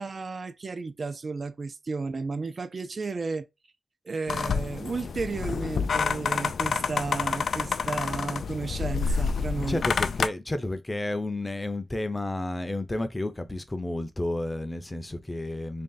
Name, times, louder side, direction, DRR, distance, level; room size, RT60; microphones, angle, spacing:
voice 1, 0.0-3.5 4.1-9.8, right 4 dB, 45° right, 0.4 m, -33 dB
sound 1, 4.3-10.3, left 5 dB, 70° left, 0.3 m, -28 dB
voice 2, 9.6-15.8, left 1 dB, 15° left, 0.5 m, -31 dB
3.3 x 2.6 x 3.8 m
wide cardioid pair, 130°, 0 cm